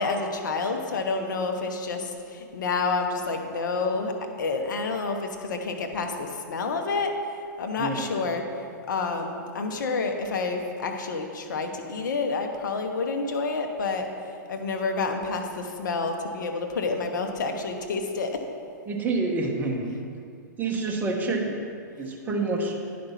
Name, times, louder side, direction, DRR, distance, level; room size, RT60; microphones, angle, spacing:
voice 1, 0.0-4.1 4.4-7.1 7.6-14.1 14.5-18.4, left 4 dB, 75° left, 4 dB, 1.1 m, -29 dB
voice 2, 7.8-8.1 18.9-19.9 20.6-21.6 22.0-22.8, right 3 dB, 15° right, 0 dB, 1.3 m, -27 dB
9.7 x 5.2 x 5.8 m, 2.4 s
hypercardioid pair, 125°, 10 cm